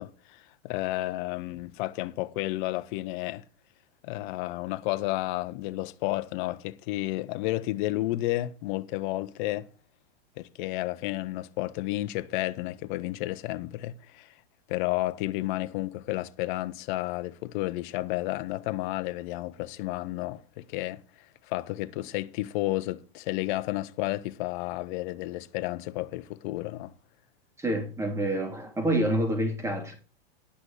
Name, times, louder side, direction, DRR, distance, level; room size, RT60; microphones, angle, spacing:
voice 1, 0.0-3.4 4.0-9.7 10.4-14.3 14.7-21.0 21.5-26.9, left 17 dB, 55° left, 0.9 m, -31 dB
voice 2, 27.6-29.9, right 1 dB, 10° right, 2.8 m, -27 dB
11.5 x 6.1 x 6.9 m
hypercardioid pair, 115°, 30 cm